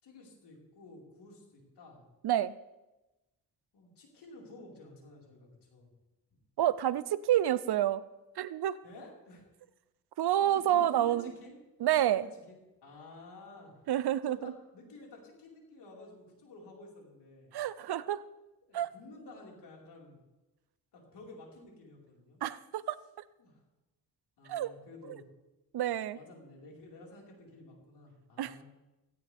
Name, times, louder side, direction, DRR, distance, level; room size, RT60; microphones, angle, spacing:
voice 1, 0.0-2.0 3.7-5.9 8.8-9.5 10.4-11.5 12.1-13.7 14.3-17.6 18.7-20.2 20.9-22.4 23.4-23.6 24.4-25.2 26.1-28.6, left 2 dB, 85° left, -2 dB, 5.0 m, -52 dB
voice 2, 6.6-8.0 8.4-8.8 10.2-11.3 11.8-12.3 13.9-14.5 17.5-18.2 18.7-18.9 22.4-23.0 24.5-24.7 25.7-26.2 28.4-28.6, right 12 dB, 70° right, 17 dB, 0.7 m, -28 dB
17.5 x 16.5 x 3.5 m, 1.0 s
cardioid pair, 100°, 40 cm